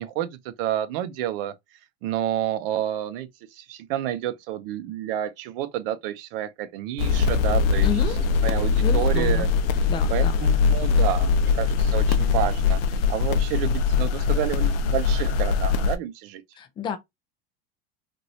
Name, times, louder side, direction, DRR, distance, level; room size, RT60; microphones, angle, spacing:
voice 1, 0.0-1.5 2.0-7.9 8.4-9.5 10.1-12.8 13.1-16.4, right 12 dB, 65° right, 0.6 m, -29 dB
sound 1, 7.0-16.0, left 5 dB, 70° left, 0.6 m, -22 dB
voice 2, 7.8-8.2 8.8-9.5 9.9-10.3 16.6-17.0, left 7 dB, 15° left, 0.3 m, -30 dB
3.0 x 2.6 x 2.6 m
supercardioid pair, 150°, 31 cm